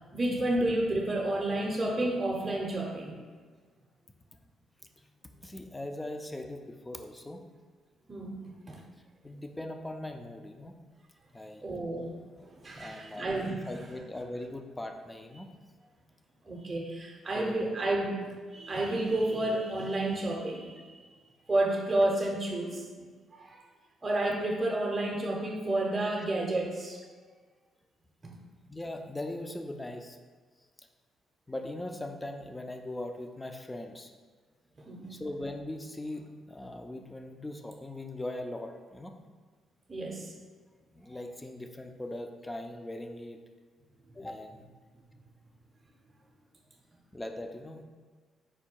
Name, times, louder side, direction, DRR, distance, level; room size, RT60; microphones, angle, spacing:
voice 1, 0.1-3.2 8.1-8.8 11.6-13.9 16.5-21.0 21.5-23.0 23.3-23.6 24.0-27.0 28.2-28.4 34.8-35.1 39.9-40.3, right 1 dB, 25° right, -1 dB, 0.7 m, -31 dB
voice 2, 5.4-7.4 9.2-10.7 11.3-11.6 12.8-15.5 15.8-15.9 17.3-17.7 28.7-30.2 30.8-30.9 31.5-34.1 35.1-39.2 40.9-43.4 44.1-44.6 47.1-47.8, left 1 dB, 15° left, 4 dB, 0.4 m, -40 dB
4.6 x 2.2 x 4.4 m, 1.5 s
cardioid pair, 90°, 0 cm